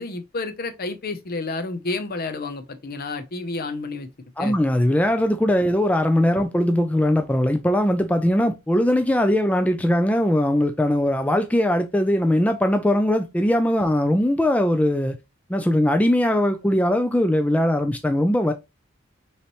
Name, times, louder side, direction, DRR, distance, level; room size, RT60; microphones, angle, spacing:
voice 1, 0.0-4.1 4.4-4.5, left 3 dB, 50° left, 0.7 m, -30 dB
voice 2, 4.4-15.2 15.5-18.5, left 1 dB, 5° left, 0.3 m, -20 dB
5.6 x 3.2 x 3.0 m
head